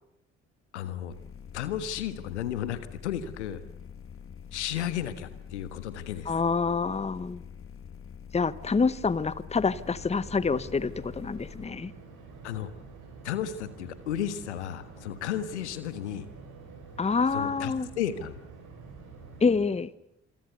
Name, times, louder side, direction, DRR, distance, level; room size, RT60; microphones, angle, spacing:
voice 1, 0.7-1.1 1.5-3.6 4.5-6.3 12.4-12.7 13.2-16.3 17.3-18.4, left 10 dB, 75° left, 14 dB, 1.4 m, -33 dB
sound 1, 1.1-11.7, left 7 dB, 40° left, 1.7 m, -45 dB
voice 2, 6.3-7.4 8.3-11.9 17.0-17.9 19.4-19.9, left 4 dB, 20° left, 18 dB, 1.0 m, -27 dB
sound 2, 9.6-19.6, right 4 dB, 60° right, 6.8 m, -48 dB
27.5 x 22.5 x 6.9 m, 0.80 s
figure-of-eight pair, 40°, 35 cm